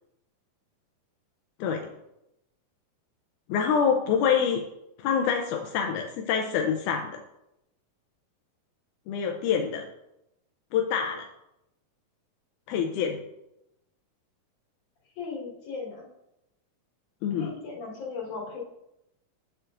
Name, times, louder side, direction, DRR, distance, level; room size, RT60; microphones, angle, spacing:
voice 1, 3.5-4.6 5.0-7.2 9.1-9.9 10.7-11.3 12.7-13.2 17.2-17.5, left 7 dB, 80° left, 3 dB, 1.8 m, -26 dB
voice 2, 15.2-16.1 17.4-18.6, left 4 dB, 65° left, -3 dB, 3.4 m, -37 dB
9.3 x 6.6 x 2.5 m, 0.85 s
omnidirectional pair, 4.0 m